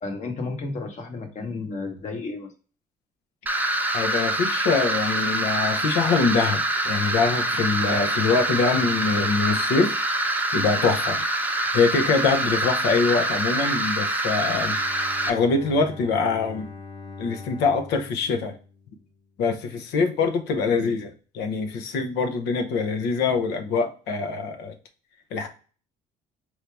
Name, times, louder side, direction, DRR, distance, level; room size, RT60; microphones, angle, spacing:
voice 1, 0.0-2.5, left 3 dB, 45° left, 4 dB, 1.2 m, -32 dB
sound 1, 3.5-15.3, right 1 dB, 10° right, 0.6 m, -25 dB
voice 2, 3.9-9.9 10.5-11.2 11.7-14.8 15.3-16.7 17.2-18.5 19.4-24.7 25.3-25.5, left 4 dB, 85° left, 6 dB, 0.8 m, -24 dB
Bowed string instrument, 14.4-19.4, left 4 dB, 25° left, 0.9 m, -42 dB
4.7 x 2.8 x 3.3 m, 0.38 s
cardioid pair, 110°, 17 cm